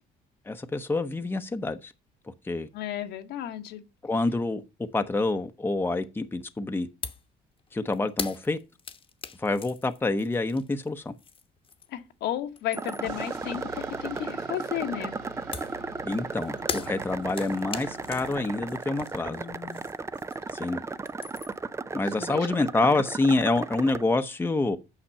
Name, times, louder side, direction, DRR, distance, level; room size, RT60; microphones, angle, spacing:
voice 1, 0.5-1.9 2.4-2.7 4.0-4.6 4.9-6.9 7.7-8.6 9.4-11.1 16.0-19.4 20.5-20.8 21.9-24.8, left 2 dB, 15° left, 0.8 m, -27 dB
voice 2, 2.7-3.8 11.9-15.2 19.2-19.8 22.1-23.0, left 11 dB, 80° left, 1.3 m, -34 dB
sound 1, 7.0-7.3 7.6-12.1 12.4-13.2 15.5-20.6 20.9-21.7, left 5 dB, 30° left, 1.1 m, -40 dB
sound 2, 12.7-24.0, right 4 dB, 15° right, 0.5 m, -35 dB
sound 3, 13.1-18.9, right 2 dB, 85° right, 2.8 m, -47 dB
8.7 x 5.9 x 5.6 m
cardioid pair, 110°, 17 cm